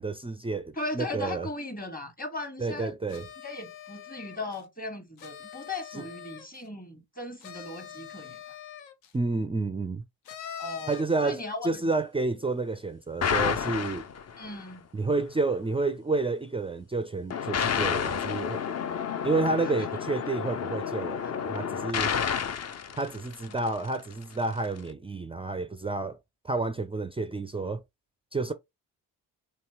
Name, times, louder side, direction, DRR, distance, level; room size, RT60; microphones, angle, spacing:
voice 1, 0.0-1.5 2.6-3.3 9.1-10.0 10.9-14.1 14.9-18.6 19.2-22.1 22.9-26.2 26.4-27.8 28.3-28.5, right 3 dB, 15° right, 0.4 m, -30 dB
voice 2, 0.7-3.0 3.4-8.4 10.6-11.8 14.4-14.8 19.6-19.7 21.2-21.3 22.2-22.4, left 2 dB, 20° left, 1.4 m, -37 dB
sound 1, 3.1-4.6 5.2-6.7 7.4-9.1 10.2-11.2, left 9 dB, 80° left, 0.8 m, -44 dB
sound 2, 13.2-14.6 17.3-23.9, left 7 dB, 40° left, 0.6 m, -30 dB
3.1 x 2.9 x 2.9 m
supercardioid pair, 55°, 42 cm